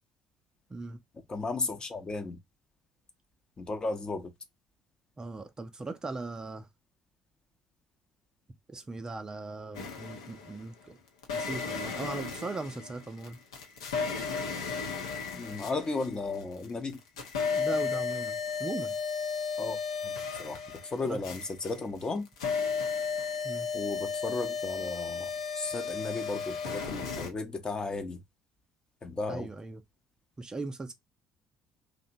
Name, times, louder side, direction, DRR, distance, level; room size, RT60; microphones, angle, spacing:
voice 1, 1.3-2.4 3.6-4.3 15.3-17.0 19.6-19.8 20.0-20.6 20.9-22.3 23.7-28.2 29.0-29.5, left 3 dB, 30° left, 0.6 m, -35 dB
voice 2, 5.2-6.7 8.7-11.0 11.3-13.4 17.5-19.0 21.0-21.2 23.4-23.7 29.3-29.8 30.4-30.9, right 3 dB, 25° right, 0.5 m, -39 dB
sound 1, 9.7-10.6 11.2-16.6 16.9-27.3, left 5 dB, 80° left, 0.6 m, -34 dB
2.7 x 2.0 x 2.5 m
hypercardioid pair, 55°, 3 cm